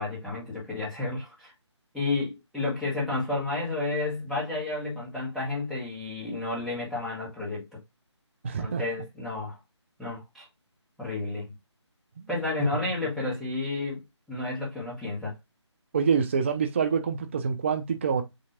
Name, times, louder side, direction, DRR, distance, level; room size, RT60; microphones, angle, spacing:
voice 1, 0.0-1.5 1.9-7.8 8.6-9.6 10.0-10.4 11.0-11.5 12.3-14.0 14.3-15.3, left 3 dB, ahead, 1.4 m, -31 dB
voice 2, 8.4-8.8 12.2-12.3 15.9-18.2, right 6 dB, 25° right, 0.5 m, -26 dB
7.4 x 2.8 x 2.4 m
figure-of-eight pair, 155°, 15 cm